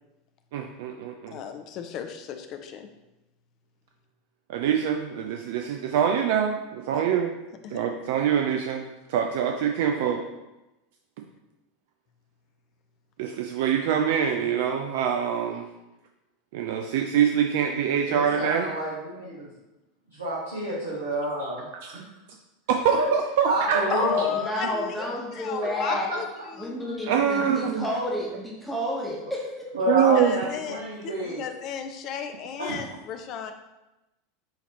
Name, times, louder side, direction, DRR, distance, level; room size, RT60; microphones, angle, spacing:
voice 1, 0.5-1.4 4.5-7.3 7.7-10.2 13.2-15.7 16.5-18.7 21.7-22.0 22.7-23.8 24.2-24.3 27.1-27.8 29.9-30.4, right 8 dB, 60° right, 3 dB, 0.3 m, -24 dB
voice 2, 1.3-2.9 7.6-7.8 23.9-26.8 29.9-33.5, left 8 dB, 45° left, 7 dB, 0.4 m, -34 dB
voice 3, 18.1-19.4 20.2-21.6 21.9-22.0 23.0-23.1 23.4-24.3 25.8-25.9 29.8-31.4 32.6-32.8, right 1 dB, 75° right, -7 dB, 1.1 m, -29 dB
voice 4, 23.8-26.1 26.6-29.5, left 1 dB, ahead, -4 dB, 1.0 m, -31 dB
5.6 x 2.9 x 3.0 m, 0.98 s
figure-of-eight pair, 80°, 0 cm